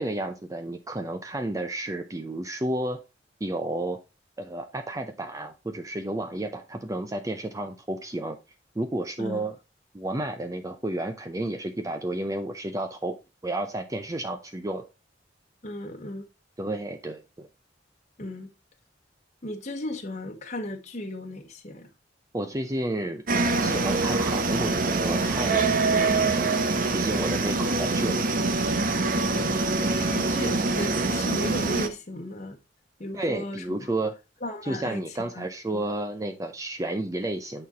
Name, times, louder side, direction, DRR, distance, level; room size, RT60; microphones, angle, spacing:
voice 1, 0.0-3.0 3.4-4.0 4.4-8.4 8.8-9.6 9.9-13.2 13.4-14.8 16.6-17.5 22.3-23.2 23.6-26.5 26.9-28.2 33.1-34.1 34.6-37.7, right 1 dB, 20° right, 0.6 m, -31 dB
voice 2, 15.6-16.3 18.2-18.5 19.4-21.9 29.2-29.4 29.7-32.6 33.0-33.9 34.4-35.5 35.7-35.9, left 1 dB, 40° left, 1.2 m, -36 dB
sound 1, 23.3-31.9, right 3 dB, 50° right, 0.9 m, -24 dB
8.8 x 4.3 x 4.1 m
head